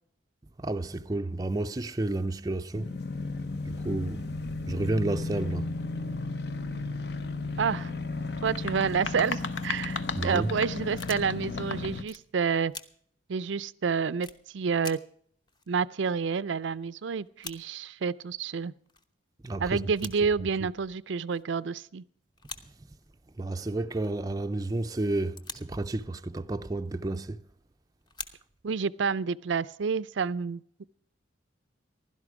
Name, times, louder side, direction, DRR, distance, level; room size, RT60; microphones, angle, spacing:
voice 1, 0.6-2.9 3.7-4.2 4.7-5.7 10.2-10.5 19.4-19.8 20.6-20.7 23.4-27.4, right 2 dB, 20° right, 0.4 m, -31 dB
sound 1, 2.7-12.0, left 3 dB, 55° left, 0.8 m, -34 dB
voice 2, 7.6-7.9 8.4-12.7 13.3-14.3 14.5-15.0 15.7-18.7 19.6-22.0 28.6-30.6, right 5 dB, 70° right, 0.5 m, -29 dB
sound 2, 8.4-12.0, left 5 dB, 80° left, 0.9 m, -37 dB
sound 3, 11.0-11.6 12.1-12.2 12.7-12.8 13.3-13.4 14.2-14.4 14.8-14.9 15.2-15.3 15.5-16.5 16.8-16.9 17.1-17.6 18.4-18.5 18.9-19.1 19.8-20.2 21.3-21.6 22.4-22.6 22.9-23.5 23.9-24.3 25.1-25.8 26.8-27.1 28.0-28.8, left 3 dB, 20° left, 0.9 m, -44 dB
16.0 x 12.0 x 4.8 m
head